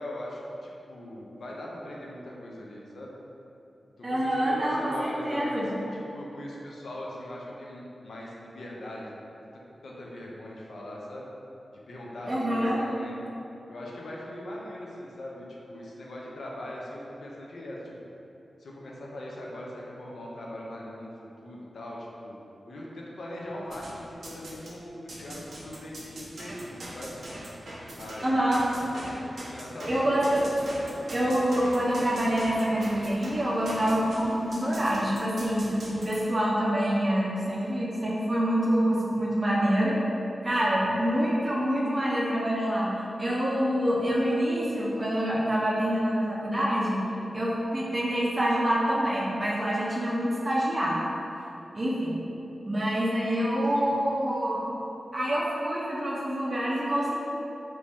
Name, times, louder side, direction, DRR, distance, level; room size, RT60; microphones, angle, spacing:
voice 1, 0.0-3.1 4.0-5.7 5.9-11.3 11.9-13.2 13.7-17.9 18.6-21.1 21.4-22.4 22.7-27.2 27.9-29.0 29.5-30.3 45.5-45.7 53.7-53.9, left 1 dB, 80° left, -3 dB, 0.5 m, -40 dB
voice 2, 4.0-5.7 12.2-12.8 28.2-28.6 29.9-30.5 31.1-40.0 40.4-47.1 47.3-51.0 51.7-52.2 52.7-54.7 55.1-57.1, equal, 25° right, -6 dB, 0.5 m, -26 dB
sound 1, 23.7-24.7 25.1-36.2, right 1 dB, 75° right, 0.6 m, -41 dB
3.0 x 2.6 x 3.4 m, 2.9 s
wide cardioid pair, 125°, 0 cm